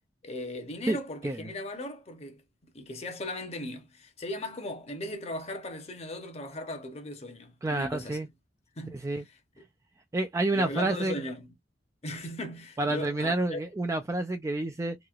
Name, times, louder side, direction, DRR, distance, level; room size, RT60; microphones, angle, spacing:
voice 1, 0.2-2.4 2.7-8.2 8.8-9.0 9.2-9.4 10.5-11.5 12.0-13.6, left 1 dB, 35° left, 0.8 m, -38 dB
voice 2, 7.6-8.3 8.9-9.2 10.1-11.2 12.8-15.0, right 2 dB, 15° right, 0.3 m, -29 dB
3.0 x 2.8 x 2.4 m
head